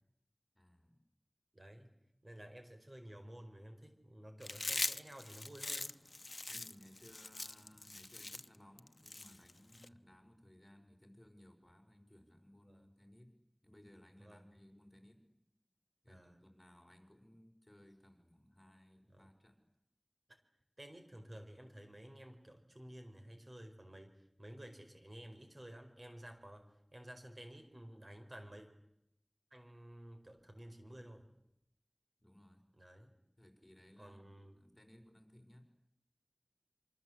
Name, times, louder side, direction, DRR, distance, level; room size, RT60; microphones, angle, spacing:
voice 1, 0.5-1.0 6.4-13.3 13.6-15.4 16.0-19.6 32.2-32.7 33.4-35.7, equal, 20° left, 5 dB, 5.2 m, -62 dB
voice 2, 1.5-1.9 2.2-6.0 9.8-10.0 12.7-12.9 14.2-14.4 16.1-16.4 19.1-19.3 20.8-28.7 29.5-31.2 32.8-33.1 34.0-34.6, right 1 dB, 50° right, 5 dB, 4.8 m, -53 dB
Chewing mastication, 4.4-9.9, left 2 dB, 70° left, 0.9 m, -42 dB
27.0 x 25.0 x 8.1 m, 0.81 s
wide cardioid pair, 45°, 0 cm